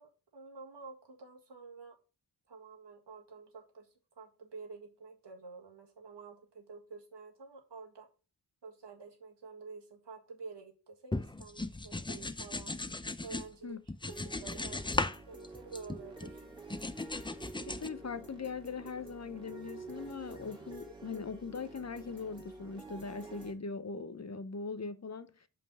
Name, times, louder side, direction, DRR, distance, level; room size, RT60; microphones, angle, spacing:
voice 1, 0.0-1.9 2.5-8.1 8.6-12.7 13.2-13.8 14.0-16.5, right 4 dB, 90° right, 1.8 m, -50 dB
sound 1, 11.1-13.5 13.9-15.2 15.4-16.3 16.7-17.9, left 2 dB, 10° left, 0.5 m, -37 dB
sound 2, 14.1-23.5, right 3 dB, 10° right, 2.1 m, -49 dB
voice 2, 17.7-25.5, left 4 dB, 40° left, 0.7 m, -40 dB
5.5 x 5.3 x 5.5 m
wide cardioid pair, 60°, 41 cm